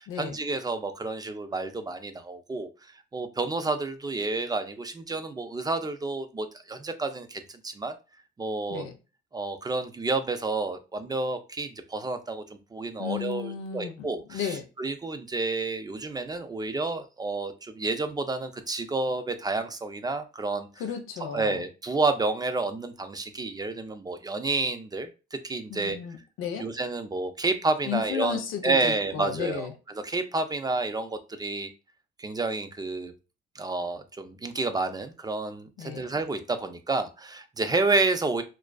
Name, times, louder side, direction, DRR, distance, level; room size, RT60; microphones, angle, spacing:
voice 1, 0.0-2.7 3.1-7.9 8.4-8.9 9.3-20.7 21.3-26.0 26.6-31.7 32.2-33.1 33.6-38.4, right 3 dB, 20° right, 0.3 m, -30 dB
voice 2, 13.0-14.6 20.8-21.6 25.7-26.7 27.9-29.7 35.8-36.1, left 8 dB, 90° left, 0.5 m, -34 dB
2.4 x 2.2 x 2.2 m
cardioid pair, 90°, 20 cm